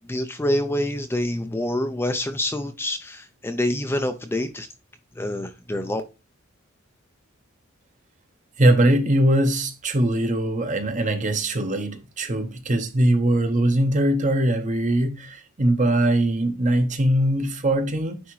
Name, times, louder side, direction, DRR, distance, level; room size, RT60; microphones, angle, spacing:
voice 1, 0.1-4.7 5.2-6.0, left 1 dB, 10° left, 0.5 m, -26 dB
voice 2, 8.6-18.2, right 1 dB, 35° right, 0.9 m, -21 dB
9.5 x 3.5 x 3.1 m
head